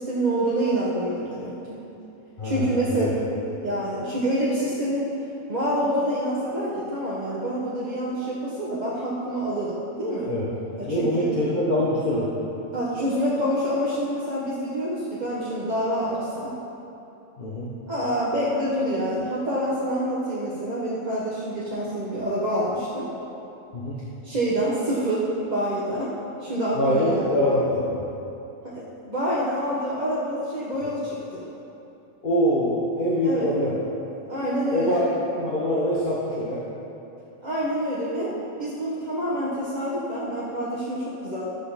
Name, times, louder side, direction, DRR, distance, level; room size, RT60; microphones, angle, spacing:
voice 1, 0.0-1.8 2.4-3.1 3.6-5.1 5.5-10.3 10.8-11.3 12.7-16.5 17.9-23.1 24.2-26.1 26.4-27.7 28.6-31.4 33.2-33.5 34.3-35.0 37.4-38.3 38.6-41.4, equal, 30° right, -8 dB, 1.3 m, -27 dB
voice 2, 2.4-3.1 10.3-10.4 10.9-12.3 17.4-17.7 23.7-24.0 26.8-27.8 32.2-33.7 34.7-35.1 35.3-36.6, equal, 40° left, -6 dB, 1.1 m, -24 dB
11.5 x 8.2 x 4.1 m, 2.9 s
omnidirectional pair, 1.5 m